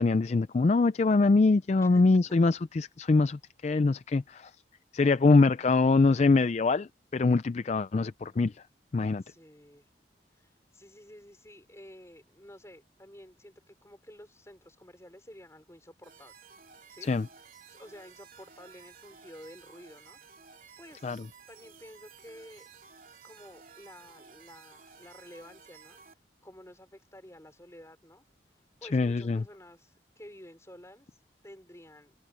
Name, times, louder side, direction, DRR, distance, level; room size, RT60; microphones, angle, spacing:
voice 1, 0.0-4.5 4.9-8.6 8.9-9.2 17.0-17.3 21.0-21.2 28.9-29.4, left 3 dB, 40° left, 0.4 m, -24 dB
voice 2, 9.2-9.9 10.3-16.3 16.9-17.1 17.4-20.2 20.8-21.1 21.5-22.7 23.2-26.0 26.4-28.2 28.8-32.1, left 1 dB, 15° left, 5.1 m, -51 dB
sound 1, 16.0-26.1, right 6 dB, 50° right, 3.5 m, -54 dB
open air
head